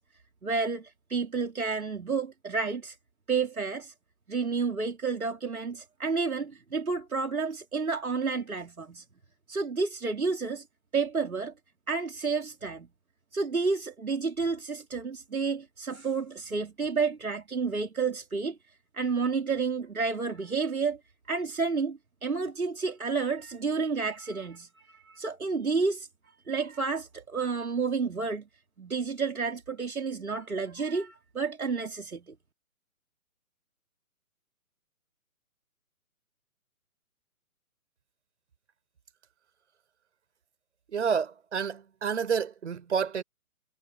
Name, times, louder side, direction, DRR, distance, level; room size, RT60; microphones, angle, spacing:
voice 1, 0.4-3.0 3.3-3.9 4.3-9.0 9.5-10.6 10.9-11.5 11.9-12.9 13.3-18.6 18.9-21.0 21.3-26.1 26.5-28.5 28.8-32.3, right 4 dB, 70° right, 3.7 m, -30 dB
voice 2, 40.9-43.2, right 6 dB, 50° right, 5.7 m, -29 dB
figure-of-eight pair, 135°, 44 cm